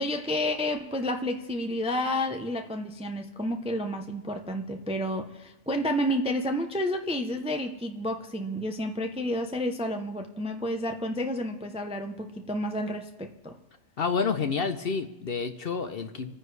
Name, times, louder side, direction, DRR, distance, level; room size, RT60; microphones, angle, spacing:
voice 1, 0.0-13.6, left 1 dB, 5° right, 5 dB, 0.5 m, -30 dB
voice 2, 14.0-16.3, left 5 dB, 55° left, 9 dB, 0.8 m, -29 dB
27.5 x 9.8 x 3.3 m, 1.1 s
omnidirectional pair, 1.4 m